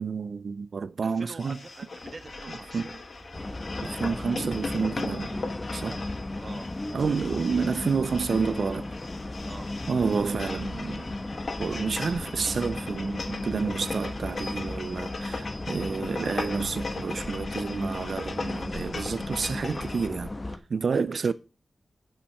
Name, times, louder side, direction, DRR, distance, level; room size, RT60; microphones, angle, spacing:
voice 1, 0.0-1.6 2.7-2.9 3.8-5.4 5.7-6.0 6.9-8.9 9.9-11.2 11.6-20.3 20.7-21.3, right 5 dB, 70° right, 0.4 m, -29 dB
voice 2, 1.0-2.8 5.8-6.0 6.4-6.7 9.4-9.7 20.9-21.3, right 3 dB, 50° right, 1.3 m, -45 dB
sound 1, 1.4-20.1, left 3 dB, 55° left, 1.4 m, -39 dB
sound 2, 2.0-7.1, right 1 dB, 25° right, 2.4 m, -55 dB
sound 3, 3.3-20.6, left 2 dB, 25° left, 1.0 m, -35 dB
9.8 x 5.6 x 5.6 m
wide cardioid pair, 110°, 0 cm